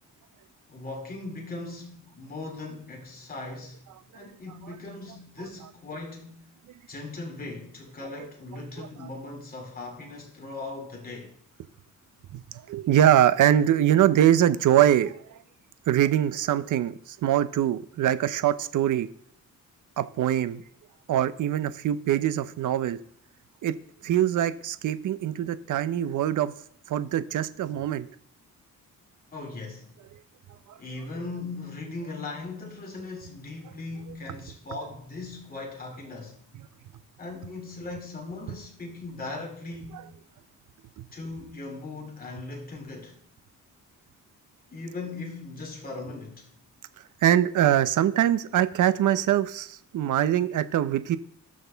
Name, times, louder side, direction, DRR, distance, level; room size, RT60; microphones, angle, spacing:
voice 1, 0.7-3.8 4.1-6.4 6.9-11.3 29.3-29.9 30.8-36.4 37.2-40.1 41.1-43.2 44.7-46.5, left 3 dB, 25° left, 2.7 m, -39 dB
voice 2, 8.8-9.1 12.3-12.4 12.7-15.4 15.9-19.1 20.0-20.6 21.1-23.0 23.6-23.7 24.0-26.5 26.9-28.1 30.7-30.8 39.9-40.0 41.0-41.1 47.2-51.2, right 11 dB, 70° right, 0.7 m, -23 dB
19.0 x 6.5 x 3.5 m
cardioid pair, 105°, 32 cm